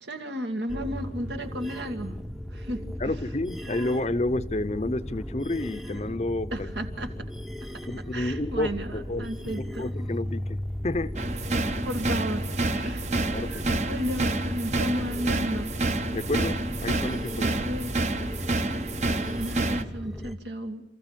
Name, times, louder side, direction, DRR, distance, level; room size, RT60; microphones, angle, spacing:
voice 1, 0.0-2.2 2.5-3.1 6.5-7.1 7.6-7.7 8.1-9.9 11.8-12.5 12.8-13.1 13.9-15.7 17.3-18.0 19.3-20.8, equal, 80° right, 2.1 m, -33 dB
sound 1, 0.7-20.3, equal, ahead, 0.7 m, -36 dB
voice 2, 3.0-6.7 7.9-11.1 13.3-13.8 16.1-17.5, left 2 dB, 35° left, 0.7 m, -30 dB
sound 2, 11.2-19.8, right 2 dB, 40° right, 0.9 m, -28 dB
28.5 x 14.5 x 7.4 m
head